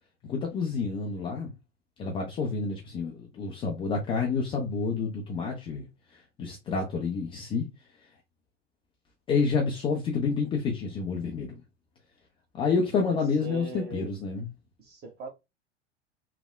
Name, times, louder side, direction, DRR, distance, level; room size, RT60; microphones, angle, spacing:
voice 1, 0.2-1.5 2.0-5.9 6.1-7.7 9.3-11.5 12.5-14.5, left 4 dB, 15° left, 0.3 m, -29 dB
voice 2, 13.1-14.1 14.8-15.3, right 3 dB, 30° right, 0.9 m, -40 dB
3.2 x 2.0 x 2.2 m
figure-of-eight pair, 85°, 34 cm